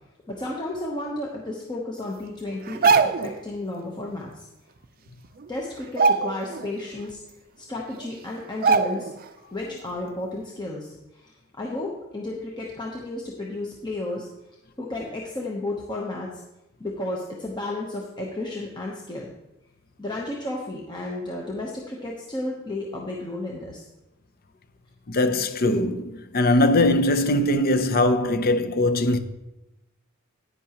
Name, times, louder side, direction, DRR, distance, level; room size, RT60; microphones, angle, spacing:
voice 1, 0.3-4.5 5.5-9.1 9.5-14.3 14.8-16.4 16.8-19.3 20.0-23.9, left 2 dB, 20° left, 0.9 m, -33 dB
sound 1, 2.6-3.4 4.8-4.9 5.2-5.5 5.9-6.7 7.1-7.2 8.0-8.1 8.6-9.2 9.6-9.8, right 5 dB, 40° right, 0.5 m, -22 dB
voice 2, 25.1-29.2, left 1 dB, 45° left, 0.6 m, -21 dB
10.5 x 9.5 x 3.0 m
head